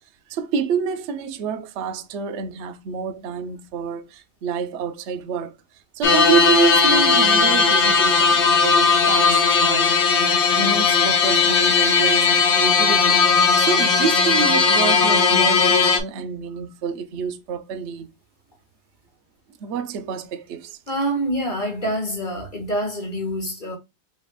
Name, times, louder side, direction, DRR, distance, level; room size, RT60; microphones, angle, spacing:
voice 1, 0.3-5.6 5.9-18.1 19.6-20.8, right 6 dB, 60° right, 0.8 m, -28 dB
sound 1, 6.0-16.0, left 5 dB, 55° left, 0.9 m, -17 dB
voice 2, 20.9-23.8, right 1 dB, 30° left, 1.5 m, -26 dB
5.3 x 3.2 x 2.3 m
omnidirectional pair, 1.8 m